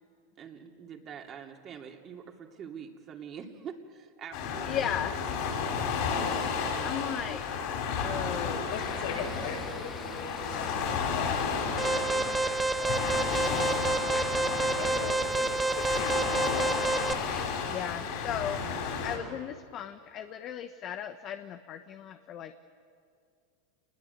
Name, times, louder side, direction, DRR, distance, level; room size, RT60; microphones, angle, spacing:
voice 1, 0.4-4.7 5.7-6.1 6.7-7.2, right 7 dB, 30° right, 2 dB, 2.7 m, -45 dB
Waves surf, 4.3-19.2, left 5 dB, 55° left, 6.5 m, -32 dB
voice 2, 4.6-5.2 6.8-7.5 7.9-8.7 8.9-9.2 17.7-18.6 19.0-22.5, left 10 dB, 40° left, 8 dB, 1.1 m, -36 dB
voice 3, 8.7-13.7 14.8-16.8, left 5 dB, 70° left, 0 dB, 7.3 m, -41 dB
sound 1, 8.7-17.5, left 3 dB, 15° left, 2.1 m, -45 dB
Alarm, 11.8-17.1, right 3 dB, 10° right, 0.5 m, -29 dB
28.0 x 21.0 x 8.2 m, 2.2 s
supercardioid pair, 130°, 0 cm